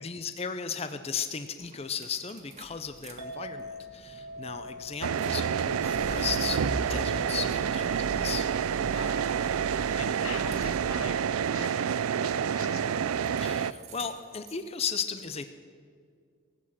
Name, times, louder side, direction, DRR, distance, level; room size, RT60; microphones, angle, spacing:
voice 1, 0.0-8.5 13.4-15.5, left 6 dB, 30° left, 10 dB, 0.5 m, -36 dB
sound 1, 1.6-3.1 3.5-11.2 12.7-13.4 13.7-14.7, right 1 dB, 30° right, 1.5 m, -42 dB
Chink clink, 3.2-9.5, left 1 dB, 60° right, 1.4 m, -46 dB
sound 2, 5.0-13.7, right 7 dB, 85° right, 0.4 m, -28 dB
voice 2, 8.9-13.0, left 5 dB, 90° left, 10 dB, 1.1 m, -44 dB
18.0 x 8.7 x 7.5 m, 2.1 s
head